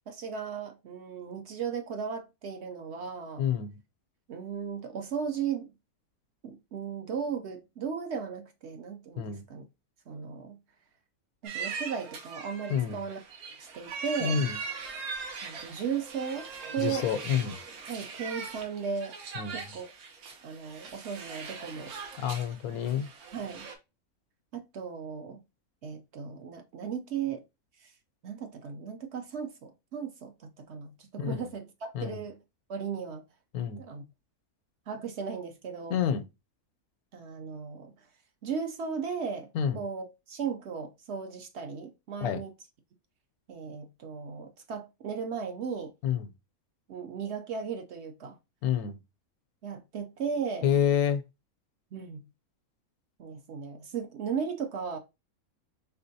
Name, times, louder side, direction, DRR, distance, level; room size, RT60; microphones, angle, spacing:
voice 1, 0.0-3.4 4.3-5.7 6.4-9.6 10.1-10.6 11.4-13.2 13.6-14.5 15.4-17.1 17.9-19.2 19.5-19.9 20.4-21.9 23.3-23.7 24.5-25.4 25.8-27.4 27.8-27.9 28.2-32.4 32.7-33.2 33.8-34.0 34.9-36.0 37.1-37.9 38.4-39.5 39.7-42.5 43.5-45.9 46.9-48.3 49.6-50.7 51.9-52.2 53.2-55.0, right 6 dB, 60° right, 0.7 m, -36 dB
voice 2, 3.4-3.7 9.2-9.4 12.7-13.1 14.2-14.6 16.8-17.6 19.4-19.6 22.2-23.1 31.2-31.4 31.9-32.2 33.5-33.8 35.9-36.2 39.5-39.8 42.2-42.4 46.0-46.3 48.6-49.0 50.6-51.2, left 8 dB, 85° left, 1.1 m, -28 dB
sound 1, 11.4-23.7, right 5 dB, 80° right, 1.3 m, -41 dB
4.3 x 3.6 x 2.6 m
omnidirectional pair, 1.5 m